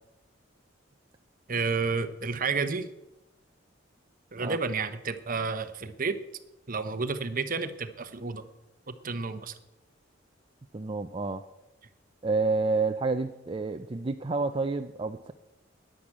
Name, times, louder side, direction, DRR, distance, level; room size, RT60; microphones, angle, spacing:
voice 1, 1.5-2.9 4.3-6.2 6.7-8.4 8.9-9.6, right 4 dB, 45° right, 10 dB, 1.0 m, -31 dB
voice 2, 10.7-11.4 12.2-15.3, right 3 dB, 30° right, 6 dB, 0.5 m, -29 dB
11.0 x 10.5 x 8.6 m, 0.98 s
head